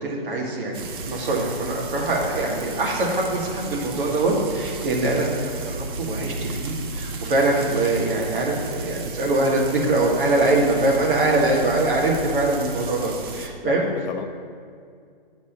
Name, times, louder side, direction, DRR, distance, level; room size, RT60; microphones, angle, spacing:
voice 1, 0.0-13.8, right 2 dB, 60° right, -2 dB, 2.0 m, -23 dB
Frying (food), 0.7-13.5, right 3 dB, 25° right, 0.5 m, -34 dB
voice 2, 13.6-14.2, left 7 dB, 50° left, 6 dB, 0.6 m, -33 dB
8.7 x 4.3 x 6.7 m, 2.2 s
hypercardioid pair, 135°, 30 cm